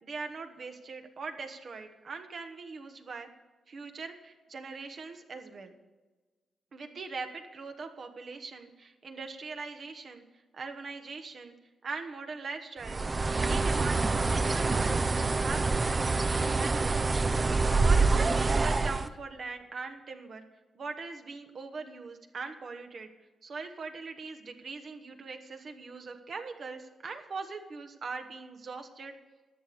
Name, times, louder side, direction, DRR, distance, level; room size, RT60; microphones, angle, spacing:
voice 1, 0.0-3.3 3.7-5.7 6.7-10.2 10.5-11.5 11.8-13.1 13.5-17.2 17.8-20.4 20.7-23.1 23.4-29.2, right 4 dB, 55° right, 6 dB, 1.3 m, -41 dB
Bird, 12.8-19.1, right 3 dB, 35° right, 0.6 m, -26 dB
11.5 x 6.8 x 8.4 m, 1.3 s
cardioid pair, 65°, 0 cm